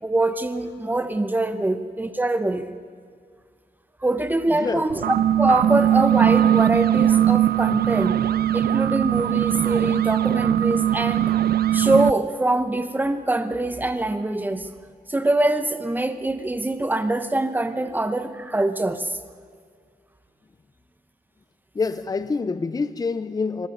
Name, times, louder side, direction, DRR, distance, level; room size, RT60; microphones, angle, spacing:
voice 1, 0.0-2.7 4.0-8.2 8.5-11.3 11.7-14.7 15.1-19.2, right 2 dB, 10° right, 1.0 m, -24 dB
voice 2, 4.5-4.9 21.7-23.7, left 4 dB, 25° left, 0.6 m, -26 dB
sound 1, 4.9-12.1, right 11 dB, 80° right, 0.5 m, -20 dB
25.0 x 21.5 x 5.5 m
wide cardioid pair, 170°, 16 cm